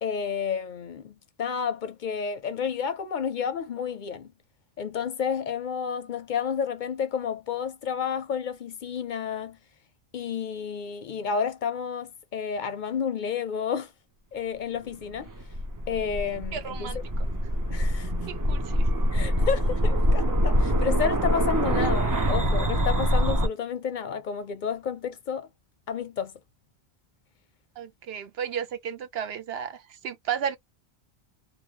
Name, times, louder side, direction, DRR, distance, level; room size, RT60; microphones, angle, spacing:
voice 1, 0.0-4.3 4.8-9.6 10.1-13.9 14.3-15.3 15.9-16.9 17.7-18.1 19.1-25.5 25.9-26.3, left 7 dB, 60° left, 0.6 m, -31 dB
sound 1, 15.1-23.5, equal, 30° right, 0.4 m, -24 dB
voice 2, 16.5-17.3 18.3-18.9 27.8-30.6, right 8 dB, 75° right, 0.9 m, -33 dB
2.9 x 2.1 x 3.0 m
omnidirectional pair, 1.0 m